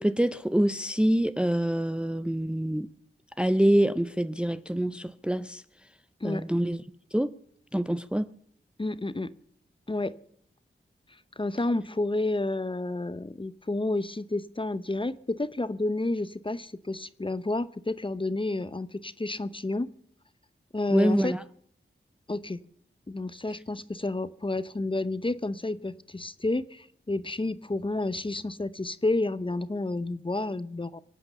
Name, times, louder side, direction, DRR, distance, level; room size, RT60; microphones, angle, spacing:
voice 1, 0.0-2.9 3.4-5.6 6.2-6.8 7.1-7.3 7.7-8.3 20.9-21.4, right 1 dB, 5° right, 0.6 m, -25 dB
voice 2, 8.8-9.3 9.9-10.1 11.4-19.9 20.7-21.3 22.3-22.6 23.1-31.0, left 2 dB, 25° left, 0.8 m, -30 dB
23.5 x 8.6 x 7.0 m
cardioid pair, 50°, 21 cm